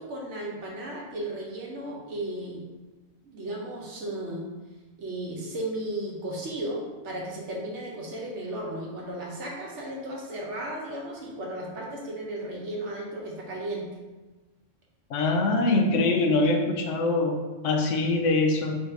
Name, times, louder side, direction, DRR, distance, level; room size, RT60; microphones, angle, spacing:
voice 1, 0.0-2.6 3.2-4.5 5.0-13.9, right 1 dB, 70° right, -2 dB, 1.2 m, -35 dB
voice 2, 15.1-18.8, left 2 dB, 85° left, 2 dB, 1.0 m, -23 dB
4.0 x 2.6 x 4.6 m, 1.2 s
omnidirectional pair, 1.3 m